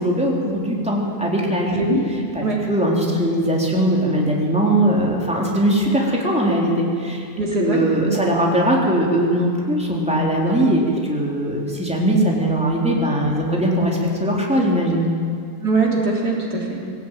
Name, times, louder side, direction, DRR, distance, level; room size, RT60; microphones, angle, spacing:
voice 1, 0.0-1.8 2.3-7.3 7.6-15.1, right 1 dB, 5° right, -3 dB, 3.7 m, -20 dB
voice 2, 1.7-2.0 2.4-2.6 7.4-8.2 15.6-16.8, right 3 dB, 90° right, -2 dB, 4.1 m, -21 dB
21.5 x 16.0 x 9.0 m, 2.2 s
omnidirectional pair, 1.7 m